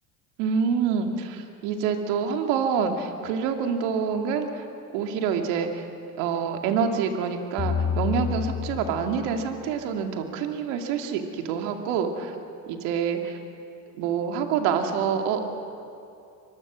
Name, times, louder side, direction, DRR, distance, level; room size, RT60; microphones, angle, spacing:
voice 1, 0.4-4.6 4.9-5.9 6.2-12.4 12.7-13.4 14.0-15.5, right 6 dB, 75° right, 4 dB, 2.5 m, -26 dB
sound 1, 7.6-9.8, left 7 dB, 35° left, 1.6 m, -29 dB
24.0 x 21.0 x 6.3 m, 2.5 s
supercardioid pair, 85°, 43 cm